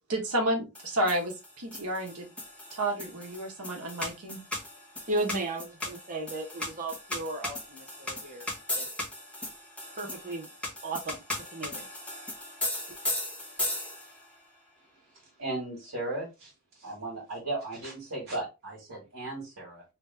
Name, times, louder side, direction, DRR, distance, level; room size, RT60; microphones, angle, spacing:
voice 1, 0.1-2.3 2.7-4.4, right 1 dB, 85° right, 0 dB, 1.3 m, -31 dB
sound 1, 0.8-14.3, left 1 dB, 5° left, 1.3 m, -37 dB
voice 2, 5.1-8.5 8.7-8.9 10.0-10.5 10.8-11.2 11.5-11.8, right 2 dB, 35° right, 0 dB, 1.0 m, -35 dB
voice 3, 15.4-16.5 16.8-19.8, right 2 dB, 60° right, -5 dB, 1.9 m, -36 dB
3.3 x 3.0 x 3.3 m, 0.26 s
head